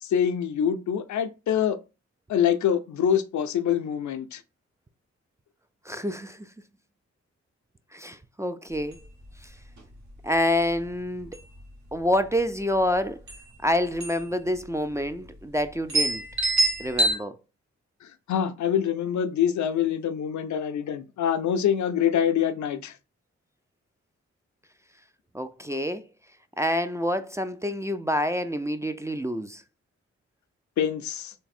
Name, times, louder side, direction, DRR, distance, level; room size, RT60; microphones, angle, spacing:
voice 1, 0.0-1.8 2.3-4.4 18.0-22.9 30.8-31.3, left 9 dB, 75° left, 0.5 m, -25 dB
voice 2, 5.9-6.5 7.9-9.0 10.2-11.4 11.9-13.2 13.6-16.2 16.8-17.4 25.3-26.0 26.6-29.6, left 1 dB, 10° right, 0.3 m, -27 dB
sound 1, 8.8-8.9 9.2-9.3 9.8-10.1 10.7-10.9 11.2-11.9 12.9-13.0 13.3-13.4 14.0-14.3 14.6-14.7 15.4-15.5 15.9-17.2, right 2 dB, 65° right, 1.2 m, -25 dB
3.3 x 2.0 x 4.2 m
cardioid pair, 45°, 30 cm